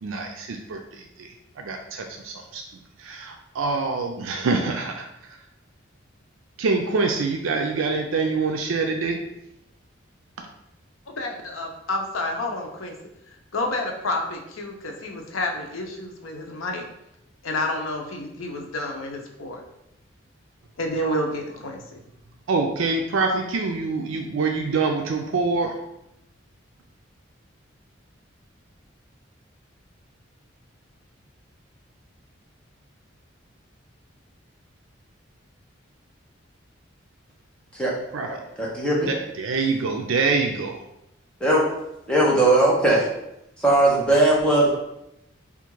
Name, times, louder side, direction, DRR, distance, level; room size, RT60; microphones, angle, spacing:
voice 1, 0.0-2.6 3.0-5.4 6.6-9.2 10.4-10.5 21.0-21.2 22.5-25.8 38.1-38.4 39.1-40.8, right 4 dB, 85° right, 3 dB, 0.4 m, -25 dB
voice 2, 11.1-12.9 13.5-16.8 17.4-19.6 20.8-22.0, left 2 dB, 90° left, 2 dB, 0.7 m, -29 dB
voice 3, 38.6-39.1 41.4-41.6 42.1-43.1 43.6-44.7, right 1 dB, 5° left, -5 dB, 0.9 m, -18 dB
3.6 x 2.5 x 4.5 m, 0.84 s
head